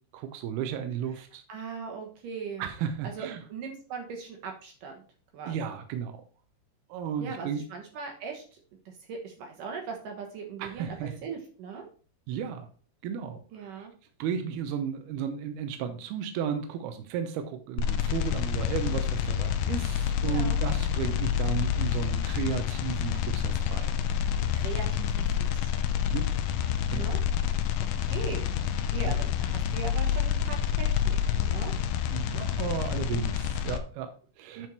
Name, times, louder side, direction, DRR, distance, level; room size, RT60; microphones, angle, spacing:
voice 1, 0.1-1.4 2.6-3.4 5.5-6.2 6.9-7.6 10.6-11.2 12.3-12.7 13.0-13.9 14.2-24.0 26.1-26.3 26.9-27.1 27.9-28.1 29.0-29.2 32.1-34.7, right 8 dB, 85° right, 7 dB, 2.7 m, -34 dB
voice 2, 1.5-2.7 3.0-5.0 5.3-5.6 7.2-8.4 8.9-11.8 13.5-13.9 20.2-20.6 24.3-25.7 26.9-27.2 27.8-28.5 28.9-31.7 34.5-34.7, right 5 dB, 65° right, 2 dB, 2.5 m, -39 dB
sound 1, 17.8-33.8, left 9 dB, 85° left, 1.8 m, -28 dB
9.4 x 4.6 x 4.5 m, 0.40 s
omnidirectional pair, 4.6 m